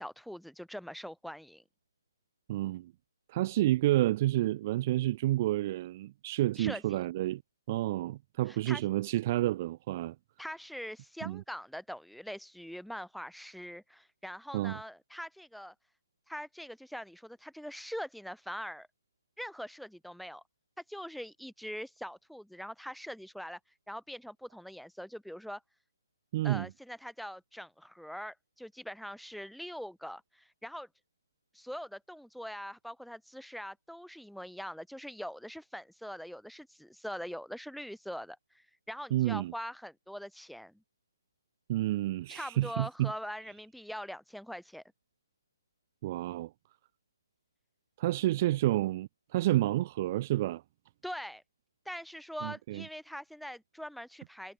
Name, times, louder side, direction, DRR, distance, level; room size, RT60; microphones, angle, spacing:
voice 1, 0.0-1.6 6.6-7.0 8.5-8.8 10.4-15.7 16.3-18.9 19.4-20.4 20.9-23.6 23.9-25.6 26.4-30.9 31.5-40.8 42.3-44.8 51.0-51.4 51.8-54.5, equal, ahead, 5.9 m, -43 dB
voice 2, 2.5-2.9 3.3-7.4 7.7-10.2 11.2-11.4 14.5-14.8 26.3-26.7 39.1-39.5 41.7-43.1 46.0-46.5 48.0-50.6 52.4-52.8, right 15 dB, 35° right, 0.6 m, -29 dB
figure-of-eight pair, 145°, 2 cm